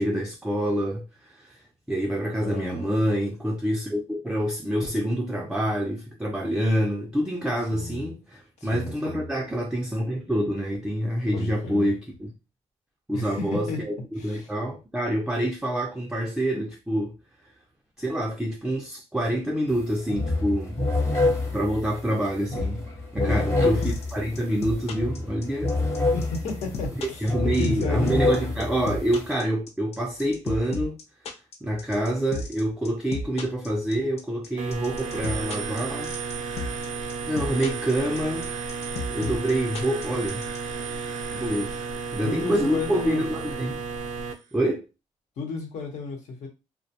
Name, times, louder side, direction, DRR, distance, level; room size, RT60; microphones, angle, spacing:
voice 1, 0.0-12.3 13.1-17.2 18.0-20.8 21.5-22.9 23.1-25.8 27.0-31.0 31.6-36.1 37.3-38.7 39.1-40.5 41.3-41.8 42.1-43.8 44.5-44.9, right 1 dB, 5° right, 0.4 m, -27 dB
voice 2, 2.4-2.9 7.7-8.1 8.6-9.2 11.3-11.9 13.1-13.8 14.2-14.5 23.2-23.8 26.1-28.3 42.2-43.2 45.4-46.5, left 3 dB, 75° left, 1.0 m, -33 dB
sound 1, 19.7-19.8 20.1-29.3, left 2 dB, 20° left, 0.8 m, -27 dB
sound 2, 23.8-40.6, left 3 dB, 55° left, 0.5 m, -33 dB
sound 3, 34.6-44.3, right 5 dB, 85° right, 0.4 m, -33 dB
2.3 x 2.1 x 2.7 m
cardioid pair, 105°, 12 cm